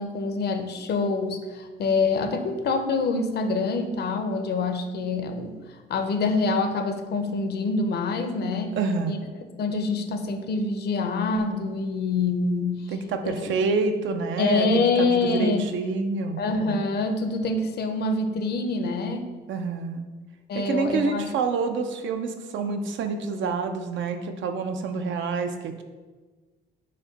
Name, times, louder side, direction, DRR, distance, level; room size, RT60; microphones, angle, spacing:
voice 1, 0.0-5.6 5.9-8.8 9.1-9.2 9.6-12.9 13.2-13.5 14.4-15.6 16.4-19.3 20.5-21.2, left 3 dB, 55° left, 7 dB, 0.5 m, -26 dB
voice 2, 8.7-9.2 12.9-16.4 19.5-20.1 20.5-25.8, right 4 dB, 70° right, 7 dB, 0.5 m, -27 dB
5.2 x 2.2 x 3.8 m, 1.3 s
cardioid pair, 90°, 20 cm